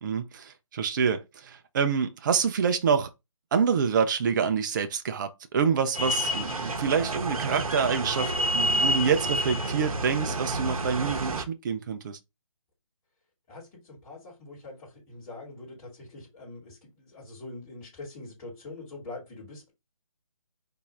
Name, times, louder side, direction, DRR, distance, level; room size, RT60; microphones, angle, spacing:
voice 1, 0.0-3.1 3.5-12.2, right 6 dB, 35° right, 0.6 m, -27 dB
sound 1, 5.9-11.4, right 1 dB, 85° right, 0.9 m, -29 dB
voice 2, 13.5-19.7, left 2 dB, 15° left, 3.0 m, -44 dB
4.3 x 2.9 x 3.7 m
figure-of-eight pair, 150°, 18 cm